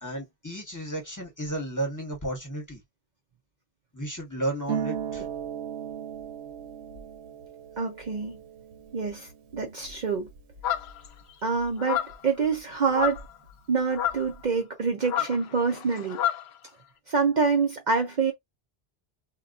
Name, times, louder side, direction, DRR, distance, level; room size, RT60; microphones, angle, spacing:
voice 1, 0.0-2.8 3.9-5.2, right 1 dB, 20° left, 1.0 m, -33 dB
Harp, 4.7-12.1 12.4-13.5 13.8-14.4, right 8 dB, 85° right, 1.0 m, -38 dB
voice 2, 7.8-8.4 8.9-10.3 11.4-13.2 13.7-16.2 17.1-18.3, right 5 dB, 50° right, 0.7 m, -26 dB
sound 1, 10.6-11.1 11.8-12.3 12.9-13.3 13.9-14.3 15.0-16.5, left 10 dB, 75° left, 0.8 m, -29 dB
3.8 x 2.2 x 2.4 m
omnidirectional pair, 1.1 m